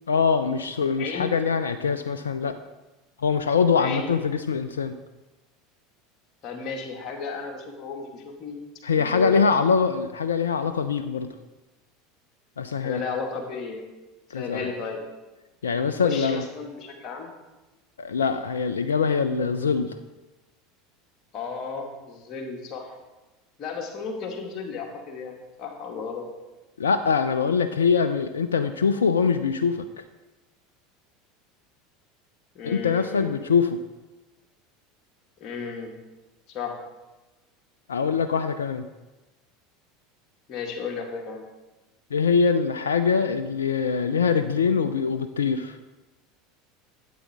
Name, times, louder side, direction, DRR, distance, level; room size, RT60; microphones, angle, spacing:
voice 1, 0.1-2.6 3.2-5.0 8.8-11.3 12.6-13.0 14.3-14.7 15.6-16.4 18.0-20.0 26.8-30.0 32.6-33.8 37.9-38.9 42.1-45.8, left 5 dB, 75° left, 10 dB, 0.4 m, -23 dB
voice 2, 1.0-1.3 3.8-4.1 6.4-8.6 9.0-9.4 12.8-13.8 14.3-15.0 16.0-17.3 21.3-22.9 23.6-26.3 32.5-33.5 35.4-35.9 36.5-36.8 40.5-41.5, left 5 dB, 40° left, 1 dB, 2.0 m, -34 dB
12.0 x 8.4 x 3.6 m, 1.1 s
figure-of-eight pair, 75°, 0 cm